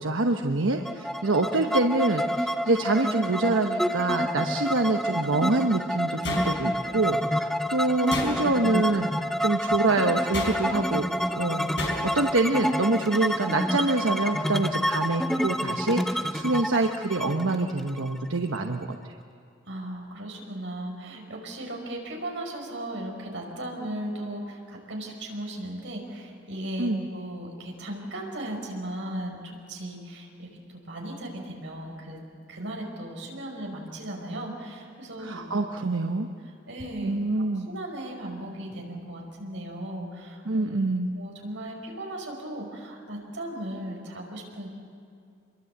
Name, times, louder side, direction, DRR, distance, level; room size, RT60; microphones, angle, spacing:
voice 1, 0.0-9.1 9.4-11.1 11.3-19.1 26.8-27.1 35.2-36.3 37.0-37.7 40.5-41.1, right 2 dB, 90° right, 4 dB, 1.1 m, -26 dB
sound 1, 0.8-18.6, equal, ahead, 0.7 m, -28 dB
voice 2, 1.3-1.7 19.6-35.6 36.7-37.1 37.6-40.7 41.1-44.7, right 1 dB, 70° right, 1 dB, 5.5 m, -37 dB
sound 2, 6.2-7.0 8.1-8.8 10.3-10.9 11.8-12.3, left 2 dB, 65° left, 5.3 m, -33 dB
27.0 x 22.5 x 8.0 m, 2.4 s
head